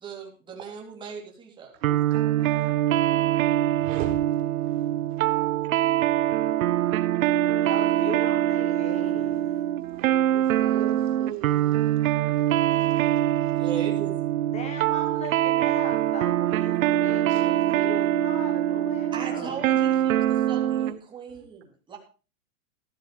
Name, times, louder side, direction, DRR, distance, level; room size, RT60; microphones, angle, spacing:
voice 1, 0.0-1.7 13.6-14.3 16.5-16.7 19.1-22.0, right 6 dB, 10° right, -1 dB, 3.3 m, -38 dB
voice 2, 1.8-3.4 3.7-4.4 5.3-5.6 6.0-6.5 9.9-12.9 13.2-13.6 17.3-17.4 21.3-21.4, right 9 dB, 50° right, 5 dB, 4.3 m, -41 dB
sound 1, 1.8-21.0, right 13 dB, 85° right, 0.9 m, -24 dB
voice 3, 7.6-9.5 14.5-19.7, left 3 dB, 15° left, 7 dB, 1.3 m, -38 dB
14.5 x 14.0 x 3.4 m, 0.34 s
supercardioid pair, 165°, 40 cm